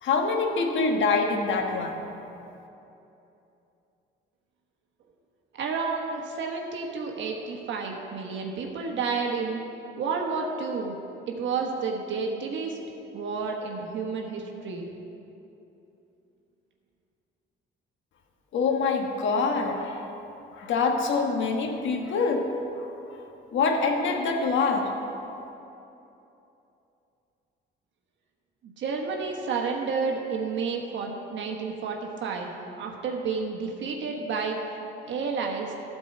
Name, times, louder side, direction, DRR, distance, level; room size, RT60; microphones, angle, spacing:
voice 1, 0.0-2.1 18.5-20.1 20.5-22.5 23.5-24.9, left 4 dB, 70° left, 3 dB, 1.3 m, -25 dB
voice 2, 5.6-9.6 10.0-11.0 11.3-12.8 13.1-14.9 28.6-32.5 32.8-34.6 35.1-35.7, right 5 dB, 70° right, 1 dB, 1.2 m, -30 dB
13.0 x 4.6 x 7.7 m, 2.9 s
cardioid pair, 90°, 20 cm